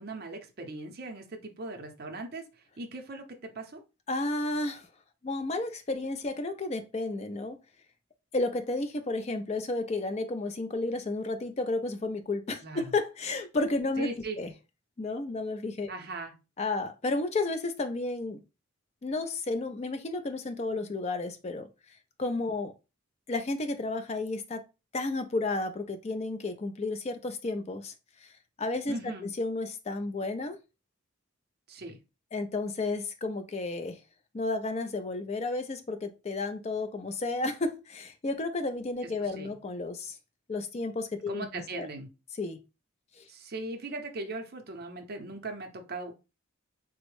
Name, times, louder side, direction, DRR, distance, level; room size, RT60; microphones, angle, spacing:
voice 1, 0.0-2.5 2.8-3.8 12.6-12.8 14.0-14.4 15.9-16.3 28.9-29.3 31.7-32.0 39.2-39.5 41.3-42.1 43.3-46.1, right 2 dB, 50° right, 0.6 m, -39 dB
voice 2, 4.1-4.9 5.2-7.6 8.3-14.1 14.4-14.5 15.0-15.9 16.6-18.4 19.0-21.7 22.2-22.7 23.3-24.6 24.9-27.9 28.2-28.3 28.6-30.6 32.3-34.0 34.3-40.2 40.5-41.9 42.4-42.6 43.2-43.3, left 2 dB, 30° left, 0.4 m, -32 dB
3.3 x 2.1 x 3.0 m
head